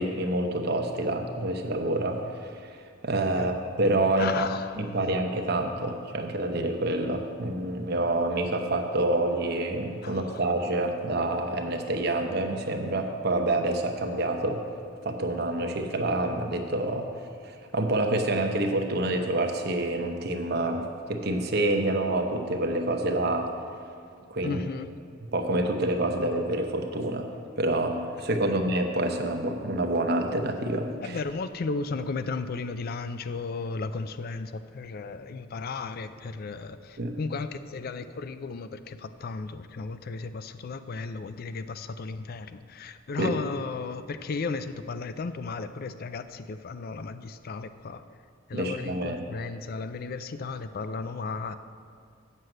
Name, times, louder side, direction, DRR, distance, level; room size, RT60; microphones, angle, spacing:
voice 1, 0.0-2.5 3.0-4.5 4.8-14.6 15.0-17.1 17.4-23.5 24.3-24.6 25.3-27.3 27.6-31.2 37.0-37.1 43.2-43.3 48.5-49.2, right 1 dB, 55° right, 4 dB, 0.9 m, -27 dB
voice 2, 4.2-4.8 10.0-10.5 24.4-24.9 28.4-28.5 31.0-48.1 48.5-51.6, left 4 dB, 50° left, 11 dB, 0.4 m, -35 dB
7.5 x 6.4 x 7.8 m, 2.2 s
head